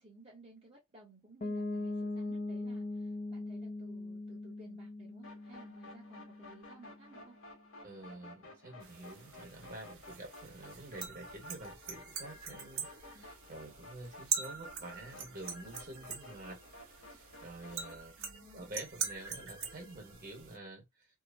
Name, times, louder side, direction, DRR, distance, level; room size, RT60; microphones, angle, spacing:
voice 1, 0.0-7.4 13.1-13.2 18.2-18.8, right 2 dB, 25° right, 0.8 m, -58 dB
Piano, 1.4-7.1, left 2 dB, 35° left, 0.4 m, -40 dB
sound 1, 5.2-18.0, left 2 dB, 65° left, 1.2 m, -54 dB
voice 2, 7.8-16.6 17.0-18.1 18.5-21.1, right 2 dB, 40° right, 1.3 m, -48 dB
sound 2, 8.8-20.6, right 7 dB, 70° right, 0.9 m, -43 dB
2.8 x 2.0 x 2.5 m
head